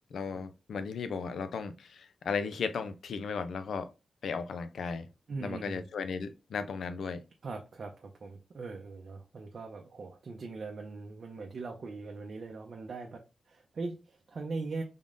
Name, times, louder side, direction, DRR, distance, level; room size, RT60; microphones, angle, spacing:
voice 1, 0.1-3.9 4.2-5.1 5.4-7.2, left 5 dB, 90° left, 0.4 m, -35 dB
voice 2, 5.3-5.8 7.4-14.8, right 3 dB, 50° right, 0.6 m, -41 dB
3.7 x 3.6 x 2.5 m
wide cardioid pair, 180°, 0 cm